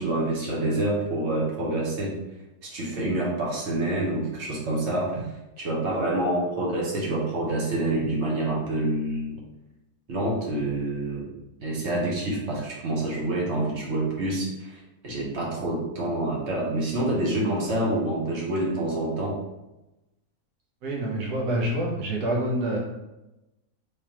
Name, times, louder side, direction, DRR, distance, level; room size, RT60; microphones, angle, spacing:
voice 1, 0.0-2.1 2.6-5.3 5.6-9.4 10.1-11.3 11.6-19.4, right 1 dB, 50° right, -3 dB, 1.2 m, -27 dB
voice 2, 20.8-22.8, right 1 dB, 90° right, -2 dB, 1.4 m, -27 dB
3.5 x 3.3 x 2.9 m, 0.98 s
omnidirectional pair, 1.6 m